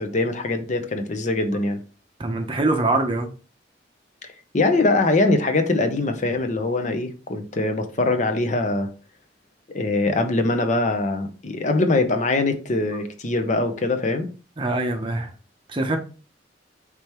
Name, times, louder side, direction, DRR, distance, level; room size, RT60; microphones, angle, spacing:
voice 1, 0.0-1.8 4.5-8.9 9.7-14.3, left 2 dB, 45° left, 0.7 m, -22 dB
voice 2, 2.2-3.3 14.6-15.3 15.7-16.0, right 2 dB, 30° right, 0.6 m, -23 dB
4.9 x 3.4 x 3.0 m
head